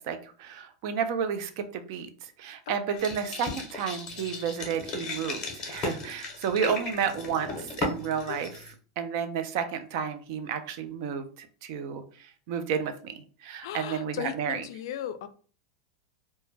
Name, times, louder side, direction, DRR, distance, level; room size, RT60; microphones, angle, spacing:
voice 1, 0.0-14.6, right 7 dB, 55° right, 10 dB, 0.4 m, -32 dB
voice 2, 2.7-3.1 8.3-8.4 13.6-15.3, left 10 dB, 70° left, 11 dB, 0.3 m, -37 dB
sound 1, 3.0-8.7, left 3 dB, 25° left, 0.7 m, -36 dB
2.1 x 2.1 x 3.1 m, 0.41 s
supercardioid pair, 145°, 2 cm